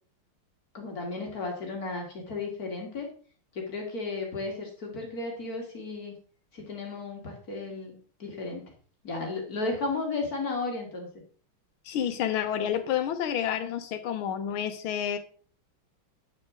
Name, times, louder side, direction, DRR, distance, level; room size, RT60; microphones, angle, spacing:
voice 1, 0.7-3.1 3.5-6.1 6.5-8.7 9.0-11.1, left 3 dB, 45° left, 1 dB, 2.2 m, -34 dB
voice 2, 11.9-15.2, left 9 dB, 75° left, 7 dB, 1.7 m, -29 dB
8.7 x 6.3 x 3.7 m, 0.43 s
omnidirectional pair, 2.3 m